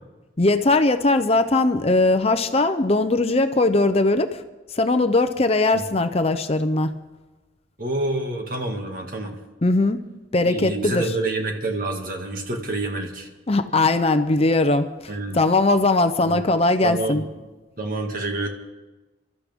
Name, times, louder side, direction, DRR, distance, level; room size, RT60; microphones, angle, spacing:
voice 1, 0.4-4.4 4.7-6.9 9.6-10.0 10.3-11.1 13.5-14.9 15.3-17.2, left 2 dB, 30° left, 9 dB, 0.6 m, -20 dB
voice 2, 7.8-9.3 10.5-13.3 15.1-15.4 16.2-16.5 16.8-17.2 17.8-18.5, right 2 dB, 45° right, 2 dB, 2.1 m, -27 dB
29.5 x 13.0 x 3.6 m, 1.2 s
head